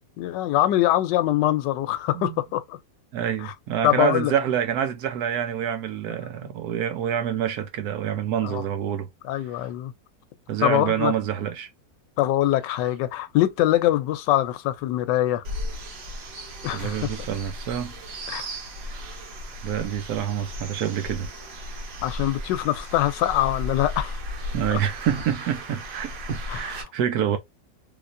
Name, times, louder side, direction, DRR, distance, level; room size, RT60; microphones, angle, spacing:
voice 1, 0.2-2.8 3.4-3.5 3.8-4.3 8.4-8.6 9.3-9.9 10.6-11.1 12.2-15.4 16.6-17.0 18.3-18.5 22.0-24.2 24.7-24.8 26.5-26.8, left 13 dB, 85° left, 1.2 m, -23 dB
voice 2, 3.1-9.1 10.5-11.7 16.7-18.0 18.8-18.9 19.6-21.3 24.5-27.4, right 9 dB, 70° right, 1.1 m, -27 dB
sound 1, 15.4-26.8, equal, 90° right, 1.7 m, -35 dB
3.3 x 2.9 x 2.5 m
omnidirectional pair, 1.9 m